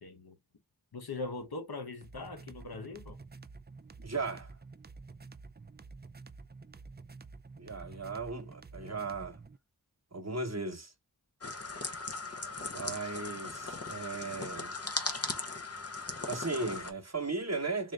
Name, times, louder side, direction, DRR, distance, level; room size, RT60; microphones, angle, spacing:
voice 1, 0.0-0.4 0.9-3.2, left 3 dB, 90° left, 1.0 m, -41 dB
sound 1, 2.0-9.6, right 4 dB, 30° right, 0.4 m, -50 dB
voice 2, 3.7-4.5 7.6-9.4 10.1-10.9 12.7-14.8 16.3-17.9, right 3 dB, 45° right, 1.0 m, -37 dB
sound 2, 11.4-16.9, left 3 dB, 40° left, 0.9 m, -38 dB
3.8 x 2.5 x 3.3 m
wide cardioid pair, 40°, 37 cm